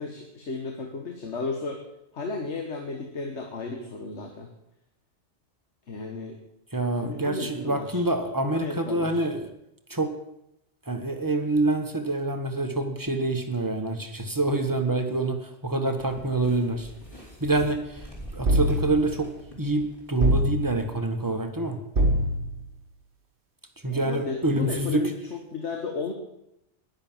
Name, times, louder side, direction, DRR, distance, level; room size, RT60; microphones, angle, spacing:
voice 1, 0.0-1.8 2.1-4.5 5.9-6.4 6.9-8.0 8.5-9.2 23.9-26.1, left 4 dB, 70° left, 4 dB, 1.6 m, -34 dB
voice 2, 6.7-9.4 9.9-10.1 10.9-15.4 15.6-16.9 17.4-17.8 18.3-19.3 19.6-21.8 23.8-25.0, right 2 dB, 15° right, 6 dB, 1.3 m, -26 dB
sound 1, 16.0-20.5 20.8-20.9, right 1 dB, 30° left, 3.3 m, -43 dB
sound 2, 18.4-19.2 20.2-21.0 21.9-22.7, right 1 dB, 50° right, 1.5 m, -24 dB
10.5 x 10.5 x 7.4 m, 0.84 s
omnidirectional pair, 1.2 m